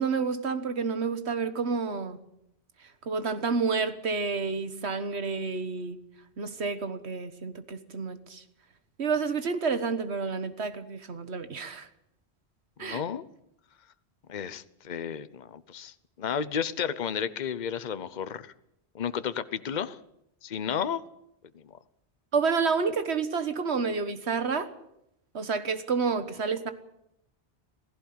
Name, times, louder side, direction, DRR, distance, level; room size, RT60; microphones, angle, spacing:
voice 1, 0.0-2.2 3.0-6.0 6.4-8.4 9.0-11.9 12.8-13.0 22.3-24.7 25.3-26.7, right 5 dB, 80° right, 11 dB, 1.7 m, -29 dB
voice 2, 12.8-13.2 14.3-18.5 18.9-20.0 20.4-21.0 21.5-21.7, left 8 dB, 45° left, 14 dB, 0.9 m, -32 dB
17.5 x 15.5 x 9.5 m, 0.80 s
omnidirectional pair, 1.1 m